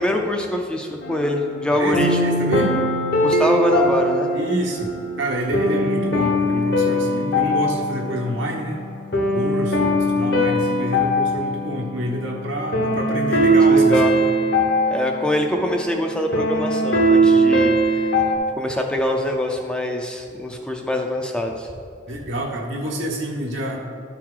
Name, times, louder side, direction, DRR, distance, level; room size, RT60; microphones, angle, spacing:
voice 1, 0.0-2.3 3.2-4.3 13.7-14.2 14.9-17.7 18.6-21.7, left 1 dB, 5° left, 2 dB, 0.4 m, -24 dB
sound 1, 1.0-18.3, equal, 55° left, 0.9 m, -21 dB
voice 2, 1.7-2.7 4.3-4.9 5.2-8.8 9.3-14.2 17.2-17.3 22.1-23.9, equal, 75° right, -1 dB, 1.3 m, -27 dB
sound 2, 3.3-5.9, right 5 dB, 60° right, 0.3 m, -25 dB
12.0 x 4.6 x 3.8 m, 2.3 s
head